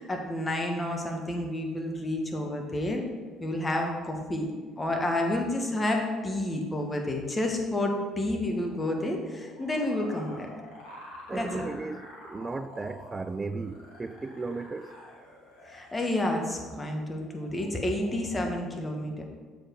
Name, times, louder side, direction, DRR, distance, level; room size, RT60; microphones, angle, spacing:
voice 1, 0.0-3.1 3.4-10.5 11.3-11.6 15.7-19.2, left 1 dB, 20° left, 1.5 m, -30 dB
sound 1, 8.4-16.0 16.3-16.6 16.9-18.4, left 1 dB, 80° left, 1.8 m, -48 dB
voice 2, 11.3-15.0, right 3 dB, 25° right, 0.4 m, -35 dB
7.1 x 4.9 x 4.7 m
hypercardioid pair, 60°, 0 cm